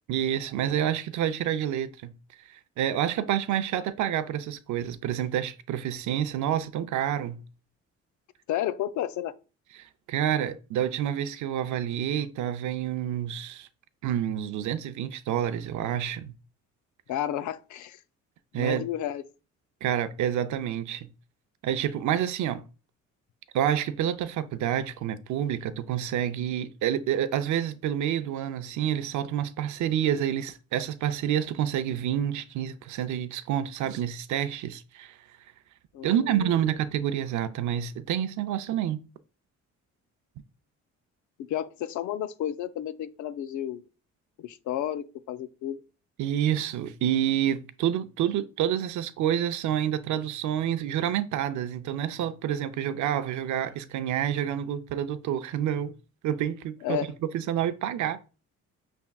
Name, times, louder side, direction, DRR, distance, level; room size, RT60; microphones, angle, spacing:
voice 1, 0.1-2.1 2.4-7.4 9.8-13.7 14.0-16.3 18.5-18.9 19.8-21.1 21.6-22.6 23.5-35.2 36.0-39.0 46.2-55.9 56.2-57.0 57.3-58.2, right 10 dB, 75° right, 0.5 m, -28 dB
voice 2, 8.5-9.3 17.1-18.0 18.5-19.2 35.9-36.5 41.4-43.9 44.4-45.8 56.8-57.1, left 11 dB, 75° left, 0.5 m, -32 dB
5.7 x 3.5 x 2.3 m
cardioid pair, 90°, 30 cm